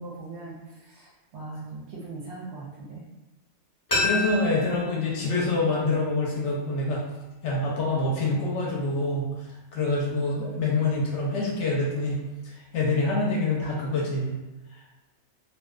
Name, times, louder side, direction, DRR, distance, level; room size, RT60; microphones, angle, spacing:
voice 1, 0.0-3.0, right 3 dB, 65° right, -4 dB, 0.7 m, -40 dB
sound 1, 3.9-6.7 7.0-7.1, left 2 dB, 20° left, 0.6 m, -31 dB
voice 2, 4.0-7.1 7.4-9.3 9.7-14.3, left 2 dB, 65° left, -4 dB, 0.8 m, -26 dB
2.6 x 2.1 x 2.3 m, 1.1 s
omnidirectional pair, 1.4 m